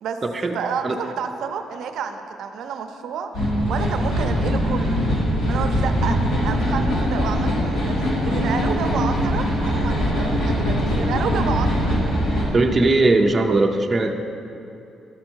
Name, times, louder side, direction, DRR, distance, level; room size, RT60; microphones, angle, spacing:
voice 1, 0.5-3.3 3.7-5.0 5.5-11.9, right 6 dB, 70° right, 7 dB, 0.5 m, -30 dB
sound 1, 3.3-12.4, equal, 70° left, 2.5 m, -22 dB
voice 2, 12.5-14.1, right 2 dB, 20° right, 2 dB, 0.6 m, -18 dB
12.0 x 6.4 x 4.6 m, 2.7 s
cardioid pair, 155°, 0 cm